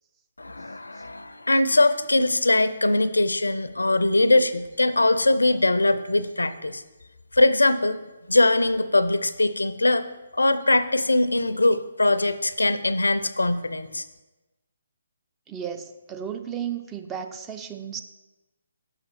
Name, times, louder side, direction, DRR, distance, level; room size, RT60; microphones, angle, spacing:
voice 1, 0.4-6.8 7.3-8.0 8.3-10.0 10.3-14.0, left 2 dB, 85° left, 12 dB, 0.5 m, -21 dB
voice 2, 15.5-18.0, right 8 dB, 15° right, 6 dB, 0.4 m, -34 dB
6.5 x 5.7 x 4.2 m, 1.1 s
figure-of-eight pair, 140°, 0 cm